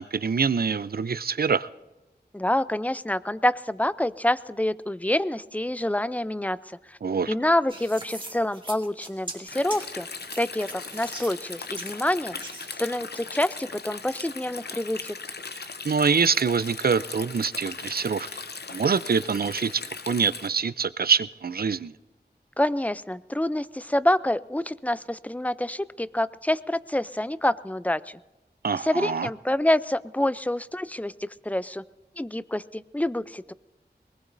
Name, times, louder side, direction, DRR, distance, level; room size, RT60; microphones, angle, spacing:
voice 1, 0.0-1.7 7.0-7.3 15.5-18.3 18.7-21.9 28.6-29.3, right 5 dB, 65° right, 16 dB, 0.5 m, -25 dB
voice 2, 2.3-6.6 6.9-7.0 7.3-10.1 10.4-12.4 12.8-15.2 22.6-28.2 28.8-31.8 32.2-33.5, left 1 dB, 10° left, 16 dB, 0.4 m, -27 dB
sound 1, 7.7-12.7, right 1 dB, 30° right, 1.8 m, -41 dB
Stream, 9.5-20.5, left 4 dB, 75° left, 0.7 m, -39 dB
22.0 x 20.0 x 2.6 m, 1.0 s
wide cardioid pair, 45°, 17 cm